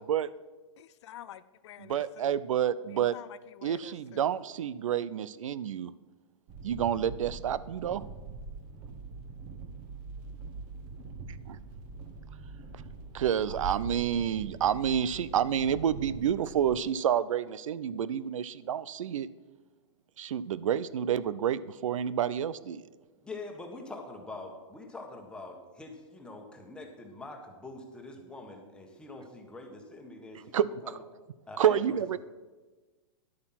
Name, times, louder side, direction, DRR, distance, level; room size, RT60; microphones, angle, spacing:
voice 1, 0.8-2.4 2.9-4.3, left 12 dB, 60° left, 15 dB, 0.5 m, -49 dB
voice 2, 1.8-3.1 3.6-5.9 6.6-8.0 11.5-11.6 13.1-19.3 20.2-22.8 30.5-30.7 31.6-32.2, right 9 dB, 80° right, 17 dB, 0.5 m, -29 dB
sound 1, 6.5-16.8, right 4 dB, 30° right, 1.2 m, -43 dB
voice 3, 23.2-31.0 31.5-32.2, left 2 dB, 5° left, 2 dB, 1.4 m, -44 dB
11.0 x 8.5 x 5.8 m, 1.2 s
hypercardioid pair, 150°, 17 cm